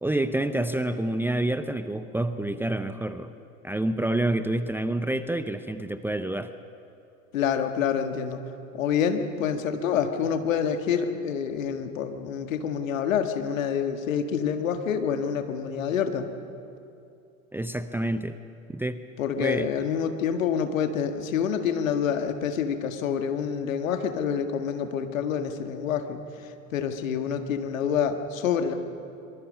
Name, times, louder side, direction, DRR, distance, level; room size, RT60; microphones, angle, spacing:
voice 1, 0.0-3.3 3.6-6.5 17.5-18.4 18.7-19.0 19.4-19.7, right 1 dB, 5° right, 11 dB, 0.6 m, -28 dB
voice 2, 7.3-8.4 8.7-16.3 19.2-26.2 26.7-28.7, left 7 dB, 70° left, 6 dB, 1.9 m, -27 dB
24.0 x 23.5 x 5.4 m, 2.6 s
figure-of-eight pair, 80°, 41 cm